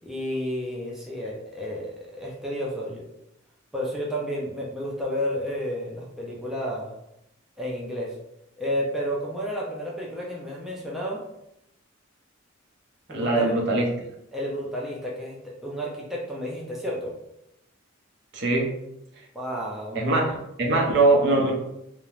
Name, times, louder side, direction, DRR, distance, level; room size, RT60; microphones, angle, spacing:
voice 1, 0.0-3.1 3.7-6.9 7.6-8.1 8.6-11.2 13.1-13.5 14.3-17.1 19.3-20.1, equal, ahead, -4 dB, 0.3 m, -31 dB
voice 2, 13.1-13.9 18.3-18.7 19.9-20.3 20.6-21.5, right 2 dB, 60° right, 0 dB, 0.6 m, -21 dB
3.0 x 2.0 x 2.3 m, 0.84 s
head